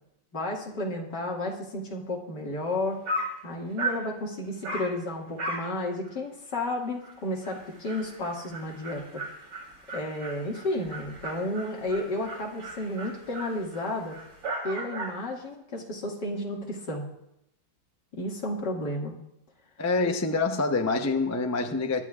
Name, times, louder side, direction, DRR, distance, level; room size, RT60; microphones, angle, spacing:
voice 1, 0.3-3.0 3.4-9.2 9.9-14.2 14.6-17.1 18.1-19.1, left 1 dB, 65° left, 2.8 m, -32 dB
Dog, 2.7-2.8 3.0-3.4 3.8-4.1 4.6-4.9 5.4-5.7 6.1-6.2 6.6-6.7 7.0-7.1 7.4-15.2, right 2 dB, 90° right, 4.2 m, -36 dB
voice 2, 19.8-22.0, left 3 dB, 25° left, 0.3 m, -26 dB
23.0 x 12.0 x 2.5 m
omnidirectional pair, 2.0 m